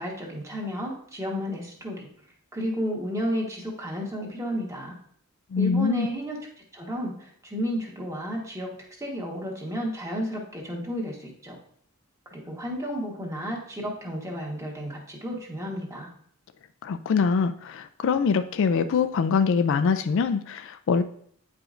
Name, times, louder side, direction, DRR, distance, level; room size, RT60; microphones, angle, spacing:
voice 1, 0.0-2.1 2.5-4.9 5.6-6.4 6.7-8.7 9.0-11.6 12.2-16.1, equal, 15° right, -2 dB, 1.3 m, -32 dB
voice 2, 5.5-6.1 16.8-21.0, left 5 dB, 60° left, 10 dB, 0.3 m, -24 dB
9.1 x 4.9 x 2.5 m, 0.62 s
head